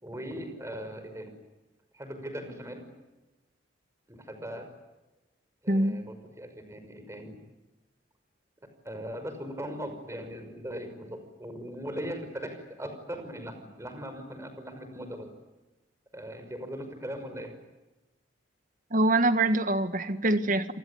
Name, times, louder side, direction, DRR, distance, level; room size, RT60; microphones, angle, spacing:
voice 1, 0.0-1.3 1.9-2.8 4.1-4.7 5.6-7.4 8.8-15.3 16.1-17.5, equal, 15° right, 7 dB, 5.6 m, -39 dB
voice 2, 18.9-20.7, right 2 dB, 45° right, 10 dB, 1.8 m, -24 dB
28.5 x 19.5 x 9.6 m, 1.1 s
head